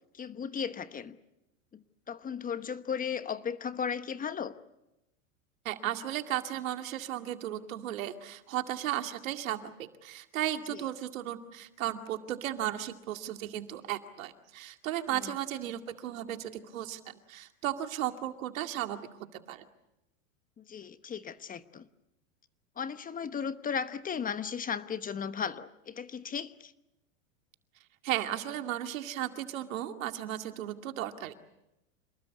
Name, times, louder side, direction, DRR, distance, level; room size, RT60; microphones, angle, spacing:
voice 1, 0.1-1.2 1.7-4.5 10.7-10.8 15.2-15.3 20.6-21.9 22.8-26.7, left 7 dB, 20° left, 12 dB, 1.0 m, -36 dB
voice 2, 5.6-19.0 19.3-19.6 28.0-31.3, right 12 dB, 80° right, 6 dB, 2.3 m, -35 dB
27.5 x 20.0 x 8.4 m, 0.89 s
hypercardioid pair, 120°, 40 cm